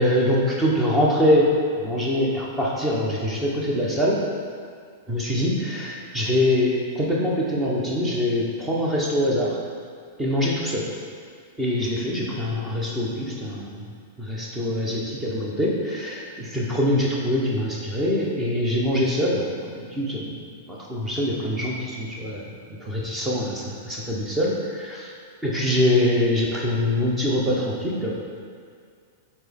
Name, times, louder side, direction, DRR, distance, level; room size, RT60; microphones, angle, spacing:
voice 1, 0.0-1.5 1.8-4.2 5.1-9.6 10.2-10.9 11.6-13.9 14.2-25.1 25.4-28.1, left 1 dB, 10° right, -4 dB, 1.1 m, -24 dB
4.5 x 4.1 x 5.3 m, 2.2 s
hypercardioid pair, 130°, 0 cm